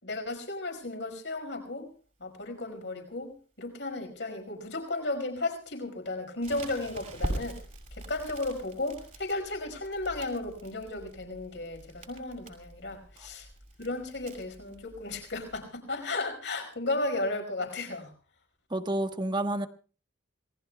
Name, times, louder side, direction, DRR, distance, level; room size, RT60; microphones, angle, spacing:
voice 1, 0.0-1.9 2.2-7.6 7.9-13.5 13.8-18.1, left 2 dB, 70° left, 3 dB, 5.0 m, -34 dB
Crackle, 6.4-15.6, right 1 dB, 40° right, 6.4 m, -43 dB
voice 2, 18.7-19.7, right 1 dB, 25° right, 7 dB, 1.2 m, -29 dB
27.5 x 19.5 x 2.3 m, 0.38 s
head